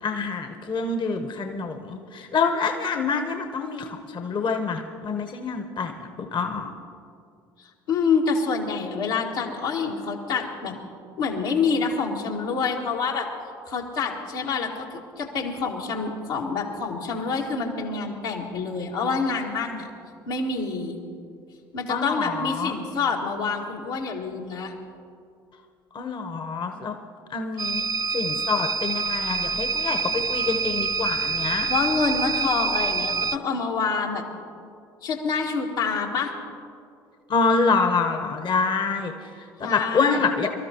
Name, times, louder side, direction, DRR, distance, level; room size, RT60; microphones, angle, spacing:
voice 1, 0.0-6.7 21.9-22.8 25.9-26.9 27.3-27.8 28.1-31.7 37.3-39.1 39.6-40.5, left 4 dB, 40° left, 5 dB, 1.0 m, -26 dB
voice 2, 7.9-10.8 11.2-13.3 13.7-19.9 20.3-21.0 21.7-24.7 31.7-34.2 35.0-36.3 39.6-40.3, left 5 dB, 80° left, -2 dB, 1.9 m, -27 dB
sound 1, 27.6-33.4, right 4 dB, 30° right, 0.4 m, -26 dB
24.5 x 13.0 x 3.0 m, 2.3 s
hypercardioid pair, 60°, 12 cm